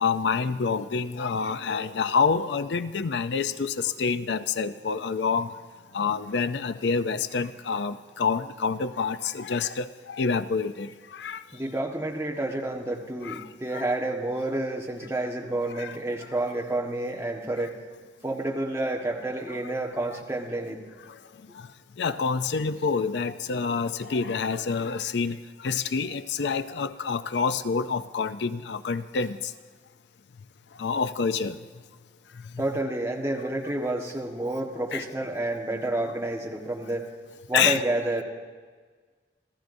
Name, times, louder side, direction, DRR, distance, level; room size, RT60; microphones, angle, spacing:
voice 1, 0.0-5.5 5.9-11.4 13.2-13.5 13.7-13.9 15.8-16.0 19.7-19.8 21.5-21.7 22.0-29.5 30.8-31.6 34.9-35.0 37.5-37.8, left 5 dB, 70° left, 0.5 m, -27 dB
voice 2, 11.5-17.8 18.2-20.8 32.6-37.1 37.5-38.2, right 2 dB, 15° right, 1.4 m, -29 dB
27.5 x 14.5 x 2.7 m
head